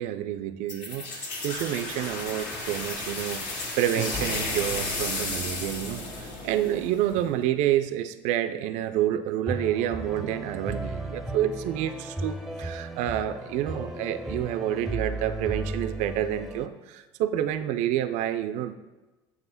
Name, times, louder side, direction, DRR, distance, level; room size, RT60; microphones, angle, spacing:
voice 1, 0.0-18.8, right 11 dB, 60° right, 11 dB, 0.4 m, -29 dB
sound 1, 0.7-7.3, left 2 dB, 60° left, 1.6 m, -33 dB
sound 2, 9.5-16.7, right 2 dB, ahead, 0.7 m, -35 dB
7.2 x 3.1 x 5.7 m, 1.1 s
hypercardioid pair, 75°, 14 cm